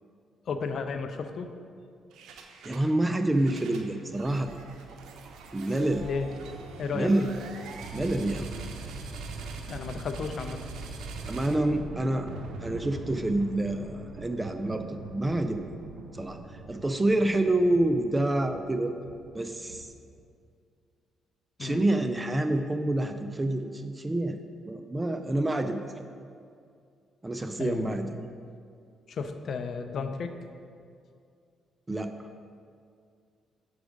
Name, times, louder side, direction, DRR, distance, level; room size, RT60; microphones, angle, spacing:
voice 1, 0.5-1.5 6.0-6.3 6.8-7.3 9.7-10.6 21.6-21.8 27.6-28.0 29.1-30.3, left 5 dB, 60° left, 8 dB, 0.5 m, -33 dB
sound 1, 2.1-2.9 3.2-20.2, right 3 dB, 80° right, 0.6 m, -42 dB
voice 2, 2.6-4.6 5.5-6.1 6.9-7.2 7.9-8.5 11.3-12.3 12.6-15.7 16.1-16.4 16.7-18.9 19.3-19.9 21.6-24.4 24.7-26.0 27.2-28.2 31.9-32.1, right 1 dB, 15° right, 8 dB, 0.4 m, -27 dB
6.1 x 4.7 x 5.1 m, 2.3 s
cardioid pair, 90°, 0 cm